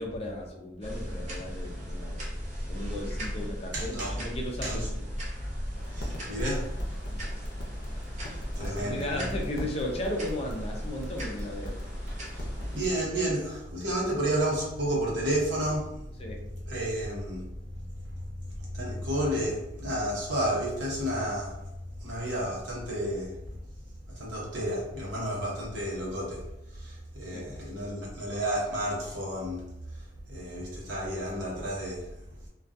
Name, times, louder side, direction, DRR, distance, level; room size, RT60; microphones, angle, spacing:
voice 1, 0.0-2.2 2.7-5.1 8.6-11.8 16.2-16.4 27.3-27.5, left 1 dB, 35° left, 0 dB, 0.4 m, -35 dB
sound 1, 0.8-12.8, equal, 40° right, 0.6 m, -37 dB
voice 2, 3.7-4.2 4.6-4.9 5.9-6.8 8.3-9.3 12.3-16.2 16.6-17.9 18.1-23.6 24.1-32.2, right 1 dB, 75° right, -5 dB, 0.8 m, -32 dB
sound 2, 5.8-13.1, equal, 85° left, 0.6 m, -41 dB
2.3 x 2.3 x 2.5 m, 0.86 s
head